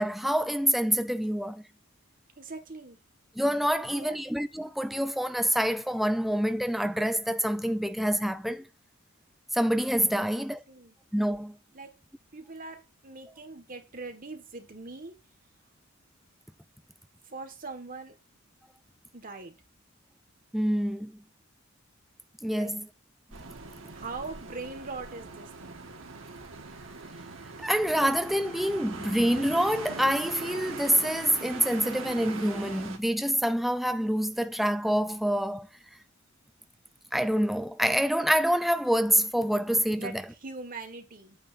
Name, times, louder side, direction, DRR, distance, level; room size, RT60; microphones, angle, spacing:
voice 1, 0.0-1.6 3.4-8.7 9.5-10.6 11.1-11.6 20.5-21.1 22.4-22.8 27.6-35.7 37.1-40.2, equal, ahead, 0.4 m, -26 dB
voice 2, 2.4-3.0 3.7-4.2 10.2-10.9 11.7-12.0 12.3-15.2 17.2-18.1 19.1-19.5 22.5-22.7 23.9-25.8 40.0-41.4, right 3 dB, 45° right, 1.6 m, -42 dB
sound 1, 23.3-33.0, right 3 dB, 70° right, 1.5 m, -41 dB
8.9 x 8.9 x 2.6 m
head